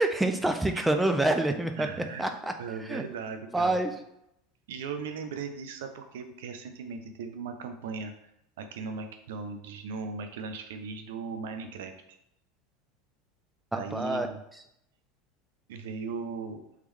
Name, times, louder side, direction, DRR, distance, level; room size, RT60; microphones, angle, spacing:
voice 1, 0.0-1.9 2.2-2.5 2.9-3.0 3.5-4.0 13.7-14.3, right 2 dB, 5° right, 6 dB, 0.5 m, -26 dB
voice 2, 1.8-2.3 2.6-3.8 4.7-8.1 8.6-12.2 13.7-14.4 15.7-16.6, right 5 dB, 80° right, 7 dB, 0.5 m, -38 dB
3.6 x 3.2 x 3.1 m, 0.79 s
supercardioid pair, 105°, 0 cm